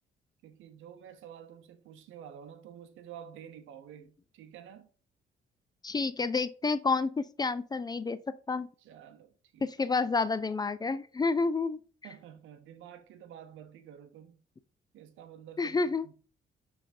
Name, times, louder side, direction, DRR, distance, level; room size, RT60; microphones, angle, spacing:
voice 1, 0.4-4.9 8.8-9.7 12.0-14.4 14.9-16.2, right 9 dB, 85° right, 0.7 m, -50 dB
voice 2, 5.8-8.7 9.6-11.8 15.6-16.1, left 4 dB, 20° left, 0.3 m, -29 dB
5.6 x 3.3 x 2.6 m
cardioid pair, 90°, 20 cm